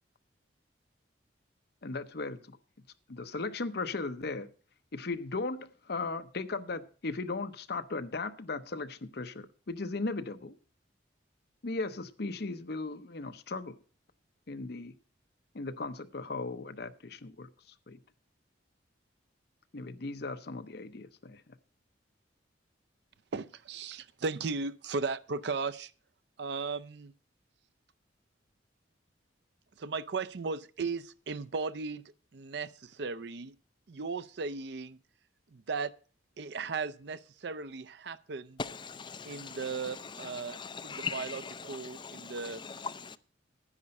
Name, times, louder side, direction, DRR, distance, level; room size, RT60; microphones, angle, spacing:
voice 1, 1.8-2.6 3.1-4.5 4.9-10.5 11.6-13.8 14.5-14.9 15.5-18.0 19.7-21.6, left 3 dB, 60° left, 0.8 m, -37 dB
voice 2, 23.3-25.9 26.4-27.1 29.8-32.0 32.3-33.5 33.9-35.0 35.5-35.9 36.4-38.6 39.2-42.6, right 4 dB, 60° right, 0.5 m, -36 dB
voice 3, 38.6-43.2, left 5 dB, 25° left, 0.5 m, -41 dB
10.0 x 9.7 x 5.3 m
head